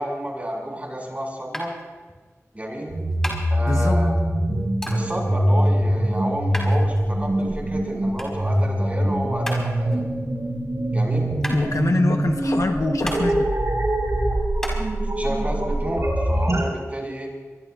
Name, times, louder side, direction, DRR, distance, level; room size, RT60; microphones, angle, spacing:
voice 1, 0.0-1.7 2.5-3.0 3.5-4.2 4.9-10.1 10.9-11.3 15.1-17.3, right 1 dB, 25° right, -1 dB, 5.7 m, -30 dB
sound 1, 1.5-14.8, equal, 10° left, 4.7 m, -36 dB
sound 2, 2.9-16.6, right 1 dB, 70° right, 5.0 m, -23 dB
voice 2, 3.6-4.0 11.5-13.5, left 2 dB, 75° left, 4 dB, 1.2 m, -24 dB
23.5 x 23.5 x 2.6 m, 1.4 s
wide cardioid pair, 70°, 5 cm